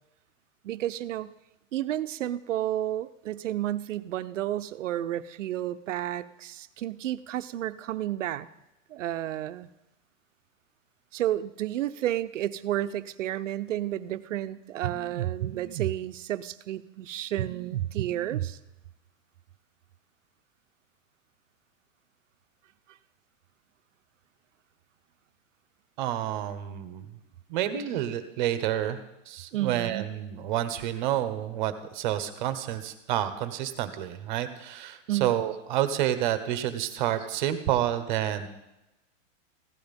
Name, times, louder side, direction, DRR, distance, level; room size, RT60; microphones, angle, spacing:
voice 1, 0.6-1.3 1.7-8.5 8.9-9.7 11.1-18.6 29.5-30.1 35.1-35.3, right 12 dB, 70° right, 12 dB, 0.8 m, -31 dB
voice 2, 26.0-27.0 27.5-29.0 29.3-38.5, right 11 dB, 40° right, 11 dB, 1.1 m, -29 dB
16.0 x 12.0 x 5.3 m, 0.92 s
supercardioid pair, 170°, 38 cm